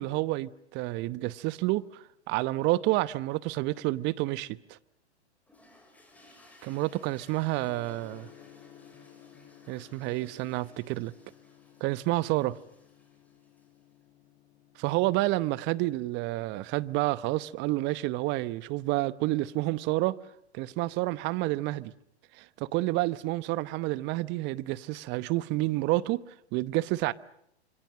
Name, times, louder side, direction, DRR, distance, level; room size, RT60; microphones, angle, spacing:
voice 1, 0.0-4.6 6.6-8.3 9.7-11.1 11.8-12.6 14.8-20.2 20.5-21.9 22.4-26.2 26.5-27.1, right 18 dB, 35° right, 0.9 m, -29 dB
sound 1, 5.5-13.9, left 2 dB, 5° left, 7.0 m, -61 dB
Gong, 7.6-18.4, left 10 dB, 35° left, 4.7 m, -56 dB
26.5 x 24.0 x 7.6 m
hypercardioid pair, 115°, 33 cm